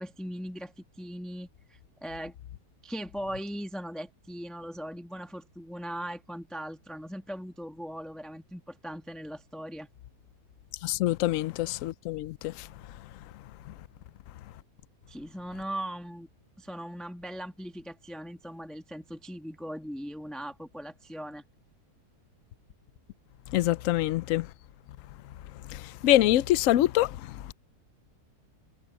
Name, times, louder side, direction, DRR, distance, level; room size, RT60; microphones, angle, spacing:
voice 1, 0.0-2.3 2.8-9.9 15.1-16.3 16.6-21.4, equal, ahead, 1.1 m, -39 dB
voice 2, 10.8-12.7 13.0-13.1 13.3-13.7 23.5-24.5 25.5-27.5, left 14 dB, 70° left, 0.8 m, -26 dB
omnidirectional pair, 1.7 m